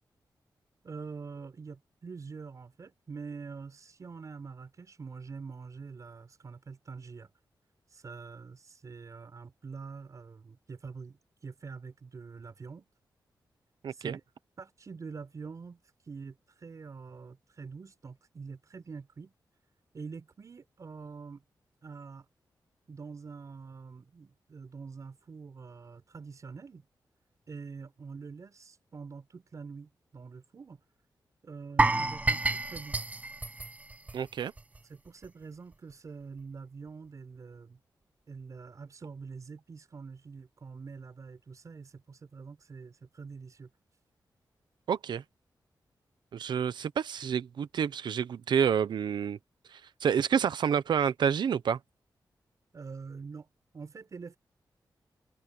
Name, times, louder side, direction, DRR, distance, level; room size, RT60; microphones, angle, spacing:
voice 1, 0.8-7.3 7.9-12.9 13.9-14.2 14.6-19.3 19.9-21.4 21.8-22.3 22.9-26.9 27.5-30.8 31.4-33.0 34.8-37.8 38.3-43.7 52.7-53.5 53.7-54.4, right 5 dB, 45° right, 5.9 m, -45 dB
voice 2, 13.8-14.2 34.1-34.5 44.9-45.2 46.3-49.4 49.7-51.8, right 7 dB, 85° right, 0.8 m, -29 dB
sound 1, 31.8-34.8 35.1-35.3 35.7-35.8, right 2 dB, 20° right, 0.5 m, -29 dB
wide cardioid pair, 135°, 7 cm